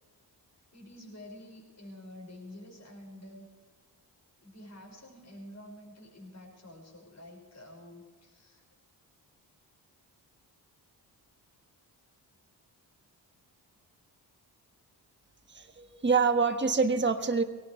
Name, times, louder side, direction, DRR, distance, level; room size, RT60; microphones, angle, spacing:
voice 1, 0.7-3.5 4.4-8.6, left 1 dB, 40° left, -1 dB, 5.9 m, -49 dB
voice 2, 15.5-17.4, right 5 dB, 25° right, 6 dB, 1.5 m, -26 dB
20.5 x 18.0 x 3.3 m, 1.4 s
cardioid pair, 70°, 43 cm